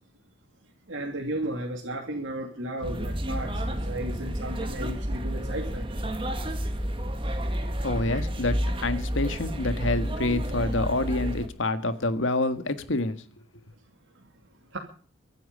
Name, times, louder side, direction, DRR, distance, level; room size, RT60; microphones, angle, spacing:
voice 1, 0.9-5.9 14.7-14.8, right 1 dB, 75° right, 2.7 m, -34 dB
sound 1, 2.8-11.5, equal, 25° right, 1.8 m, -30 dB
voice 2, 7.8-13.2, left 2 dB, 75° left, 1.7 m, -27 dB
24.5 x 9.2 x 5.5 m
head